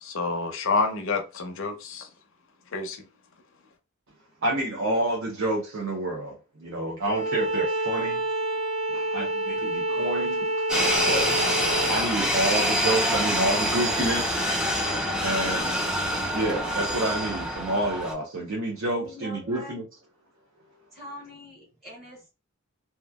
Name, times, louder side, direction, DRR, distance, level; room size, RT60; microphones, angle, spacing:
voice 1, 0.0-2.1 2.7-3.0, left 4 dB, 65° left, 0.6 m, -28 dB
voice 2, 4.4-8.2 8.9-15.8 16.3-19.9, right 1 dB, 65° right, 0.7 m, -29 dB
Bowed string instrument, 7.0-12.0, right 1 dB, 90° right, 1.1 m, -28 dB
sound 1, 10.7-18.1, equal, 5° right, 0.4 m, -26 dB
voice 3, 19.0-19.8 20.9-22.3, left 1 dB, 35° right, 1.1 m, -43 dB
2.9 x 2.3 x 2.2 m
head